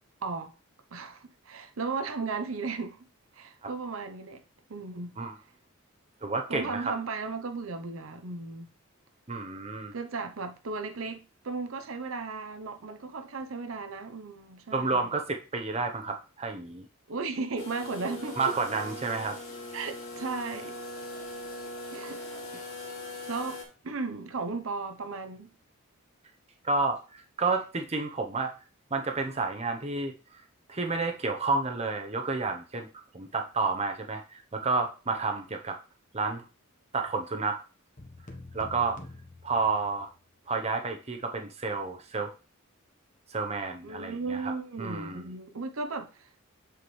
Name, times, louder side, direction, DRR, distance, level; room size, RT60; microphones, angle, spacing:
voice 1, 0.2-0.5 0.9-3.0 3.3-4.4 4.7-5.2 6.5-8.7 9.9-15.1 17.1-18.4 19.7-20.8 21.9-22.2 22.5-22.8 23.3-25.5 43.8-46.3, right 4 dB, 75° right, 0.7 m, -35 dB
voice 2, 6.2-6.9 9.3-9.9 14.7-16.9 18.4-19.4 26.6-28.5 28.9-30.4 30.7-32.9 33.1-35.8 36.1-36.4 36.9-37.6 38.5-39.0 39.4-40.1 40.5-42.3 43.3-44.5 44.8-45.3, right 3 dB, 30° right, 0.8 m, -30 dB
sound 1, 17.6-23.6, left 1 dB, 85° left, 2.1 m, -40 dB
sound 2, 38.0-40.2, left 2 dB, 35° left, 1.1 m, -47 dB
7.7 x 5.1 x 3.2 m
head